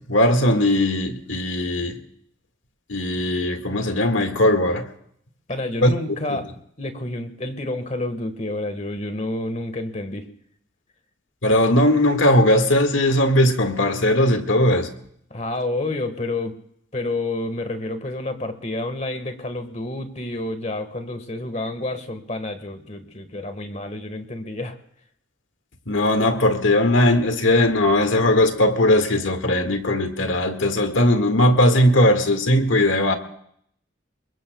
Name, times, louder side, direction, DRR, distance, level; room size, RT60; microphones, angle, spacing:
voice 1, 0.0-2.0 2.9-4.9 5.8-5.9 6.3-6.4 11.4-14.9 25.9-33.1, left 1 dB, 90° left, 1.9 m, -19 dB
voice 2, 5.5-6.5 6.8-10.3 15.3-16.5 16.9-24.8, left 2 dB, 35° left, 1.5 m, -29 dB
27.0 x 22.0 x 2.3 m
head